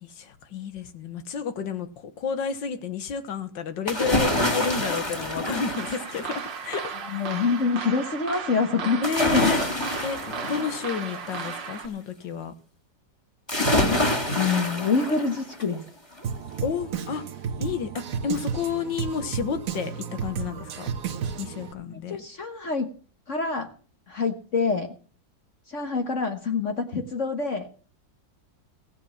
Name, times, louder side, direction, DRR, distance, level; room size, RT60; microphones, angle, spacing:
voice 1, 0.0-7.0 8.9-9.6 10.0-12.5 16.6-17.2 17.6-20.9 21.4-22.2, left 6 dB, 80° left, 10 dB, 2.0 m, -31 dB
sound 1, 3.9-6.7 9.0-11.7 13.5-15.8 16.2-16.3, left 1 dB, 15° left, 2.4 m, -26 dB
sound 2, 5.7-11.9, right 7 dB, 75° right, 2.1 m, -36 dB
voice 2, 7.0-9.5 13.7-14.0 14.3-15.8 22.1-22.9 23.3-23.7 24.1-24.9 25.7-27.7, left 4 dB, 45° left, 5 dB, 1.5 m, -26 dB
Drum kit, 16.2-21.7, right 7 dB, 55° right, 1.4 m, -32 dB
16.0 x 7.6 x 7.2 m, 0.40 s
omnidirectional pair, 2.0 m